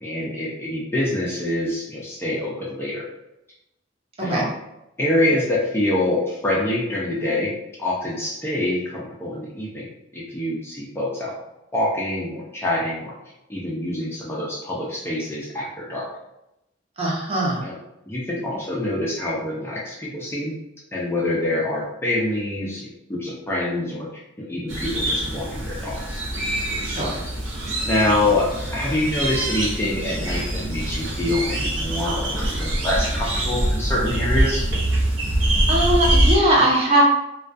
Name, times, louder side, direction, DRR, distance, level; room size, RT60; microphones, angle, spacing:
voice 1, 0.0-3.1 4.2-4.5 5.0-11.3 11.7-13.1 13.5-16.1 17.6-17.8 18.1-20.5 20.9-26.2 27.8-34.7, left 1 dB, 10° left, -5 dB, 0.4 m, -25 dB
voice 2, 17.0-17.6 26.8-27.2 35.7-37.0, right 1 dB, 30° right, -3 dB, 0.6 m, -20 dB
sound 1, 24.7-36.4, right 1 dB, 70° right, 0.7 m, -24 dB
2.2 x 2.2 x 2.5 m, 0.89 s
head